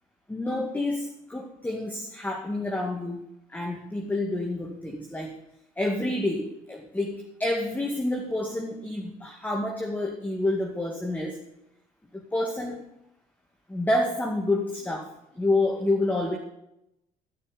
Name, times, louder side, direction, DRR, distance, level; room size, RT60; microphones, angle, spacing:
voice 1, 0.3-5.4 5.8-11.4 12.1-12.8 13.7-15.1 15.3-16.4, left 2 dB, 10° left, 1 dB, 2.3 m, -28 dB
15.5 x 6.2 x 10.0 m, 0.82 s
cardioid pair, 110°, 17 cm